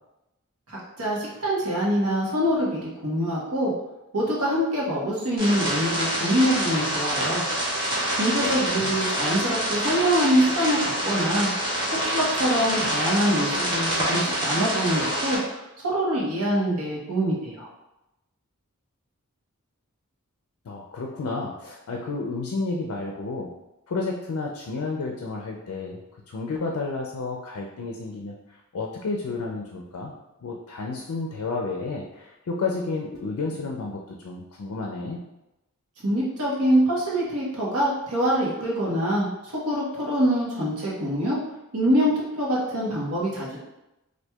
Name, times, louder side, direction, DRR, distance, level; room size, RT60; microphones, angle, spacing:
voice 1, 0.7-3.7 4.1-7.4 8.1-11.5 12.1-17.7 36.0-41.4 41.7-43.6, equal, 85° right, -4 dB, 1.1 m, -24 dB
sound 1, 5.4-15.4, right 1 dB, 20° right, 1.2 m, -26 dB
voice 2, 8.3-9.0 20.6-23.5 23.9-26.0 26.3-30.1 30.4-35.2, left 3 dB, 75° left, 0 dB, 0.4 m, -31 dB
4.3 x 2.5 x 2.3 m, 0.93 s
head